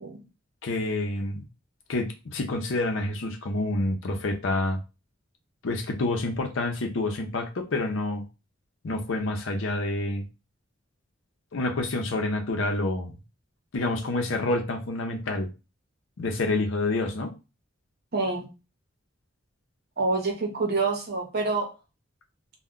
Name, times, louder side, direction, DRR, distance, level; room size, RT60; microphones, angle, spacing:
voice 1, 0.6-1.4 1.9-4.8 5.6-8.2 8.8-10.2 11.5-13.1 13.7-15.5 16.2-17.3, left 2 dB, 75° left, 4 dB, 0.6 m, -28 dB
voice 2, 18.1-18.5 20.0-21.7, right 3 dB, 55° right, 2 dB, 0.8 m, -27 dB
2.2 x 2.2 x 3.7 m, 0.29 s
head